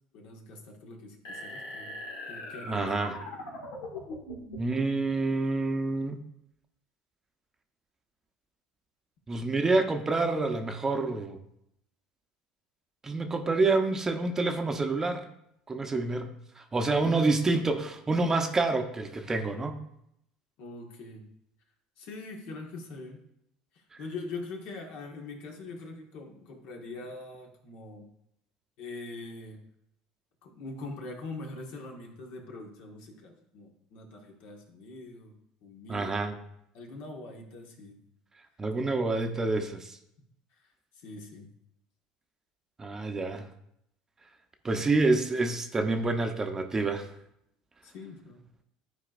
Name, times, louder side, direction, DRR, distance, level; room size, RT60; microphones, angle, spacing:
voice 1, 0.1-2.0 2.3-2.9 16.1-16.2 16.9-17.7 20.6-21.3 22.0-23.2 24.0-28.1 28.8-29.6 30.4-35.3 35.6-36.3 36.7-38.0 39.3-39.4 41.0-41.5 47.8-48.4, left 3 dB, 65° left, 1 dB, 1.5 m, -43 dB
sound 1, 1.3-4.8, left 1 dB, 90° left, 1.9 m, -41 dB
voice 2, 2.6-3.2 4.6-6.2 9.3-11.4 13.0-15.3 15.7-16.3 16.7-19.8 35.9-36.4 38.6-40.0 42.8-43.5 44.6-47.1, right 3 dB, 20° right, 6 dB, 0.8 m, -27 dB
11.5 x 4.6 x 2.5 m, 0.76 s
supercardioid pair, 100°, 2 cm